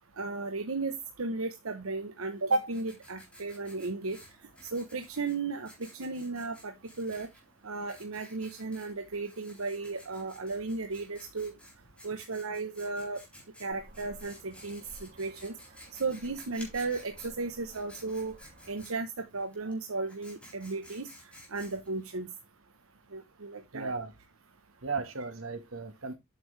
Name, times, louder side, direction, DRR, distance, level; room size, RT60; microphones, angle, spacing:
voice 1, 0.2-4.2 4.7-7.3 7.6-11.5 12.0-13.2 13.6-15.5 16.0-18.3 18.7-21.1 21.5-22.3 23.1-23.9, right 3 dB, 85° right, 1.0 m, -35 dB
Writing, 2.3-22.1, equal, 5° left, 4.0 m, -55 dB
sound 1, 13.7-18.8, right 1 dB, 45° right, 2.6 m, -54 dB
voice 2, 23.7-24.1 24.8-26.1, right 4 dB, 70° right, 1.6 m, -35 dB
8.6 x 6.4 x 3.3 m
head